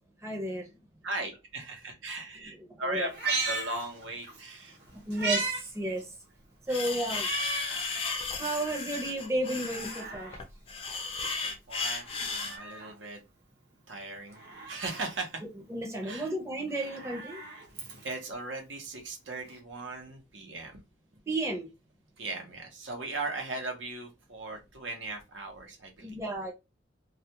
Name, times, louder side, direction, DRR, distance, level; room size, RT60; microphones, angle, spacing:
voice 1, 0.2-0.7 2.9-3.1 5.1-5.5 5.7-6.0 6.7-7.3 8.4-10.3 15.7-17.4 21.3-21.6 26.0-26.5, right 1 dB, 15° right, 0.6 m, -32 dB
voice 2, 1.0-4.8 6.7-6.8 11.4-13.2 13.9-14.4 14.7-15.4 16.0-16.3 18.0-20.8 22.2-26.2, right 2 dB, 85° right, 0.8 m, -38 dB
Meow, 3.1-4.4 4.8-5.6 6.0-6.1 7.1-7.8 8.3-8.4 9.4-10.4 12.0-12.9 14.3-15.1 16.6-18.3 19.5-19.6, right 3 dB, 60° right, 0.9 m, -36 dB
sound 1, 6.7-12.6, left 4 dB, 30° left, 0.4 m, -34 dB
2.3 x 2.2 x 2.8 m
head